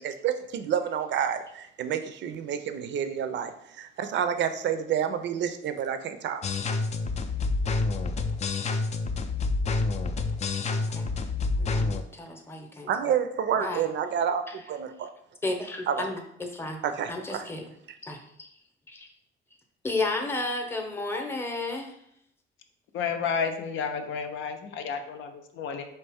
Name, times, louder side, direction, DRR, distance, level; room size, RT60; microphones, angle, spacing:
voice 1, 0.0-6.4 12.9-14.4 14.7-15.1 15.9-16.1 16.8-17.5, right 8 dB, 65° right, 9 dB, 0.5 m, -29 dB
sound 1, 6.4-12.0, left 3 dB, 35° left, 0.4 m, -28 dB
voice 2, 11.6-12.9 13.6-13.8 15.4-16.8 17.1-17.6 18.0-18.5 18.9-19.1 19.8-21.9, left 2 dB, 10° left, 3 dB, 0.7 m, -32 dB
voice 3, 22.9-25.9, left 6 dB, 75° left, 6 dB, 0.6 m, -31 dB
4.3 x 2.9 x 3.5 m, 0.74 s
cardioid pair, 90°, 20 cm